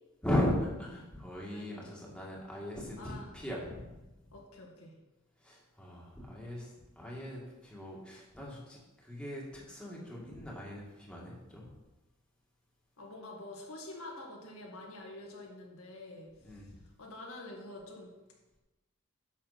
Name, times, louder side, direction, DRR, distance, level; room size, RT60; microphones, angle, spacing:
voice 1, 0.2-4.1 5.4-6.7 7.0-11.7 16.4-16.8, left 1 dB, 5° left, -4 dB, 2.0 m, -38 dB
voice 2, 1.5-1.9 3.0-3.3 4.3-5.0 13.0-16.6 17.0-18.1, left 2 dB, 90° left, -1 dB, 2.0 m, -47 dB
10.5 x 6.5 x 4.2 m, 1.0 s
head